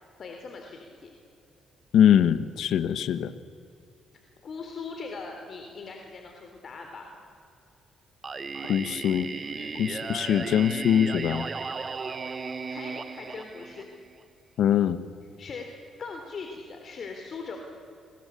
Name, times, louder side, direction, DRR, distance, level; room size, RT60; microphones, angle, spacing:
voice 1, 0.2-1.1 4.4-7.1 9.5-9.8 12.7-13.9 15.4-17.6, left 4 dB, 50° left, 3 dB, 3.7 m, -40 dB
voice 2, 1.9-3.3 8.7-9.3 9.8-11.5 14.6-15.0, left 9 dB, 75° left, 13 dB, 1.4 m, -22 dB
Singing, 8.2-14.2, right 4 dB, 35° right, 1.4 m, -35 dB
29.5 x 23.5 x 8.5 m, 2.5 s
cardioid pair, 90°, 0 cm